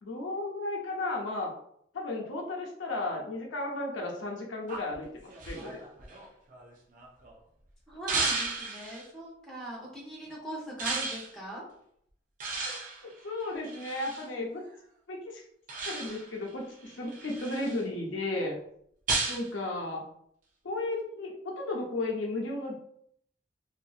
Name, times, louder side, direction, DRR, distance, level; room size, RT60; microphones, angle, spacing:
voice 1, 0.0-1.5 1.9-5.8 7.9-8.0 12.6-12.7 13.0-14.6 15.1-15.4 15.9-18.6 19.3-20.0 20.6-22.8, left 2 dB, 80° left, -1 dB, 0.7 m, -34 dB
sound 1, 4.7-7.3 8.1-9.1 10.8-11.3 12.4-14.3 15.7-16.4 16.9-17.8 19.1-19.5, right 3 dB, 45° right, 0.4 m, -34 dB
voice 2, 7.9-11.7, right 1 dB, 5° left, -6 dB, 0.8 m, -41 dB
2.7 x 2.5 x 2.4 m, 0.68 s
head